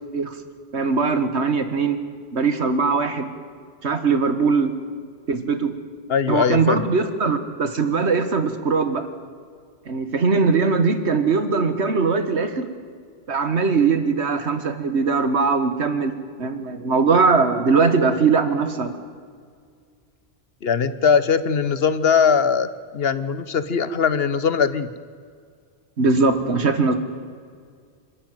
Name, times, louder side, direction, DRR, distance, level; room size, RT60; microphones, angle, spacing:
voice 1, 0.7-2.0 2.3-3.3 3.8-4.7 5.3-5.7 6.3-9.1 9.9-12.7 13.3-16.1 16.4-18.9 26.0-27.0, right 4 dB, 80° right, 9 dB, 1.9 m, -20 dB
voice 2, 6.1-6.8 20.6-22.7 22.9-24.9, left 6 dB, 65° left, 14 dB, 1.1 m, -20 dB
27.0 x 12.5 x 9.3 m, 2.1 s
omnidirectional pair, 1.1 m